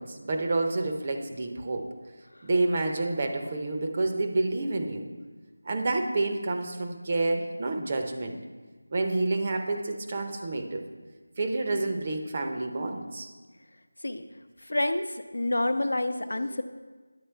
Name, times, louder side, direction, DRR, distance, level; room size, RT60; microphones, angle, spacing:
voice 1, 0.0-1.9 2.4-5.1 5.6-8.4 8.9-10.8 11.4-13.3, right 2 dB, 20° right, 4 dB, 0.6 m, -29 dB
voice 2, 14.6-16.6, left 1 dB, 70° left, 9 dB, 0.8 m, -28 dB
10.0 x 8.1 x 4.5 m, 1.3 s
figure-of-eight pair, 180°, 0 cm